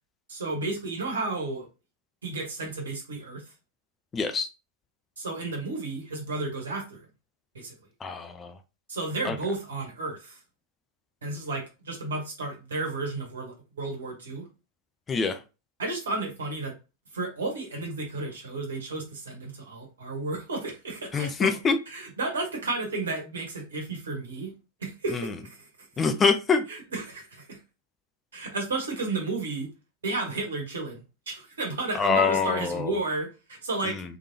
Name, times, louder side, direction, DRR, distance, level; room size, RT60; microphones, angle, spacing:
voice 1, 0.3-1.7 2.2-3.5 5.2-7.1 7.5-7.7 8.9-10.4 11.2-14.5 15.8-16.7 17.1-21.6 21.9-24.5 24.8-25.7 26.7-27.6 28.3-29.7 30.0-34.0, right 2 dB, 65° right, 1 dB, 1.5 m, -32 dB
voice 2, 4.1-4.5 8.0-8.5 9.2-9.4 15.1-15.4 21.1-21.8 26.0-26.6 32.0-32.9 33.9-34.0, left 5 dB, 20° left, 8 dB, 0.4 m, -25 dB
3.4 x 3.3 x 2.8 m, 0.29 s
figure-of-eight pair, 90°, 0 cm